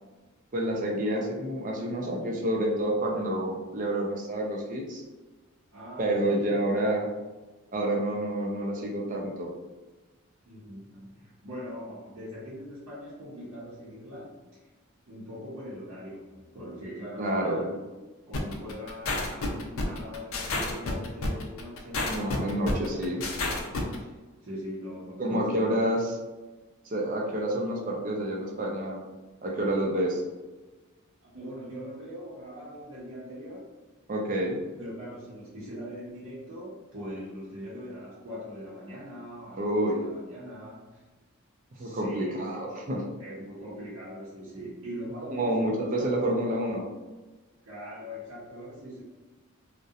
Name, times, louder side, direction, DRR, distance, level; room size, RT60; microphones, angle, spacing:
voice 1, 0.5-5.0 6.0-7.1 7.7-9.5 17.2-17.6 22.1-23.2 25.2-26.2 26.9-29.0 29.4-30.2 34.1-34.6 39.6-40.0 41.8-43.0 45.3-46.9, right 1 dB, 35° right, 0 dB, 0.4 m, -28 dB
voice 2, 5.7-6.6 10.5-14.7 15.1-17.9 18.3-23.5 24.0-24.2 24.4-26.0 31.3-33.7 34.8-41.0 41.7-42.5 43.2-46.0 47.6-49.0, equal, 75° right, -10 dB, 0.7 m, -41 dB
sound 1, 18.3-24.0, left 2 dB, 75° left, 0.4 m, -30 dB
2.7 x 2.1 x 2.3 m, 1.2 s
head